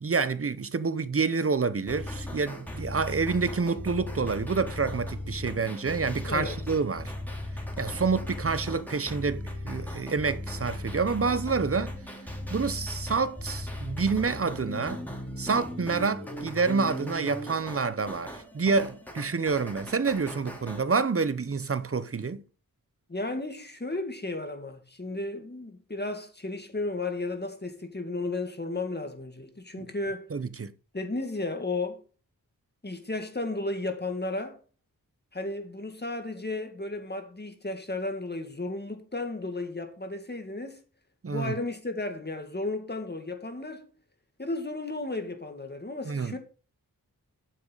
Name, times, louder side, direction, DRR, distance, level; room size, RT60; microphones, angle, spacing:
voice 1, 0.0-7.1 7.8-11.9 12.5-15.0 15.4-22.4 29.8-29.9 30.3-30.7 41.2-41.5 46.1-46.4, right 4 dB, 40° right, 0.8 m, -28 dB
sound 1, 1.9-20.8, left 1 dB, 5° left, 3.0 m, -37 dB
voice 2, 6.3-6.6 23.1-30.3 30.9-32.0 32.8-34.6 35.3-40.8 41.3-43.9 44.4-46.4, left 2 dB, 30° left, 2.1 m, -34 dB
9.4 x 7.4 x 4.0 m
wide cardioid pair, 60°, 36 cm